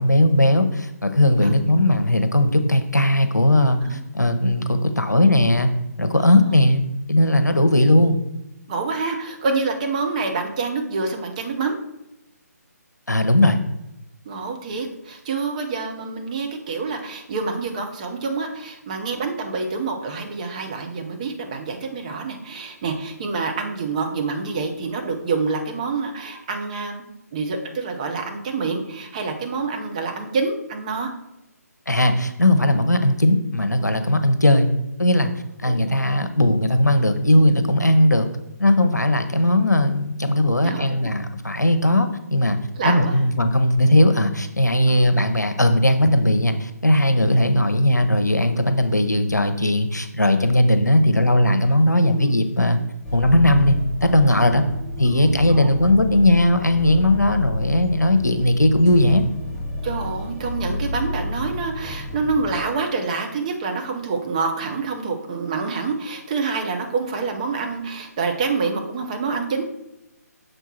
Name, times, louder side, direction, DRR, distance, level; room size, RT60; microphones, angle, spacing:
voice 1, 0.0-5.7 6.0-6.8 7.1-8.2 13.1-13.6 31.9-34.7 35.0-35.3 35.6-38.3 38.6-42.6 42.8-52.8 53.1-54.6 55.0-59.2, left 1 dB, 80° left, 8 dB, 0.8 m, -18 dB
voice 2, 6.2-6.6 7.5-7.9 8.7-11.8 14.2-27.0 27.3-31.1 35.6-36.3 40.6-41.0 42.8-43.2 44.9-45.1 51.6-52.3 54.4-54.5 54.8-55.9 59.8-69.6, right 4 dB, 25° right, 3 dB, 0.7 m, -27 dB
sound 1, 53.0-62.6, left 2 dB, 5° left, 0.5 m, -30 dB
6.6 x 4.6 x 4.3 m, 0.89 s
figure-of-eight pair, 145°, 9 cm